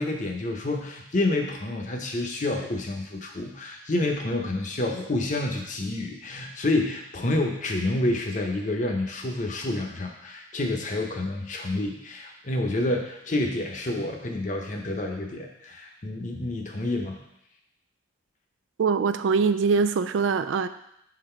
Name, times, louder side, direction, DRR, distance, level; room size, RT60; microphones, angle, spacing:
voice 1, 0.0-17.2, left 2 dB, 40° left, 2 dB, 0.8 m, -28 dB
voice 2, 18.8-20.7, right 5 dB, 85° right, 11 dB, 0.3 m, -23 dB
6.0 x 4.0 x 4.4 m, 0.79 s
head